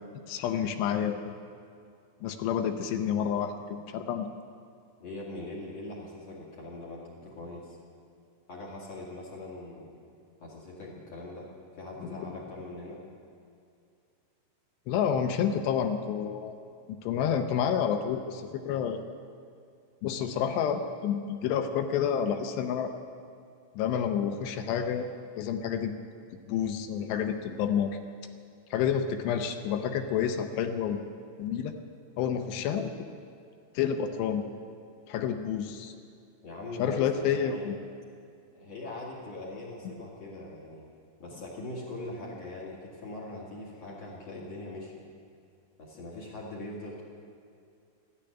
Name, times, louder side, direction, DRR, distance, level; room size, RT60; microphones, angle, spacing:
voice 1, 0.3-1.3 2.2-4.3 12.0-12.3 14.9-16.5 17.0-19.0 20.0-22.9 23.8-25.1 25.4-25.9 26.5-28.0 28.7-31.0 31.4-31.7 32.2-33.1 33.8-34.4 35.1-35.9 36.8-37.8, left 8 dB, 80° left, 7 dB, 2.7 m, -29 dB
voice 2, 5.0-7.8 8.5-9.9 10.4-11.5 11.7-13.0 36.4-37.7 38.5-40.8 41.2-44.9 45.8-47.0, left 2 dB, 45° left, -4 dB, 2.5 m, -41 dB
13.5 x 9.9 x 10.0 m, 2.4 s
omnidirectional pair, 5.2 m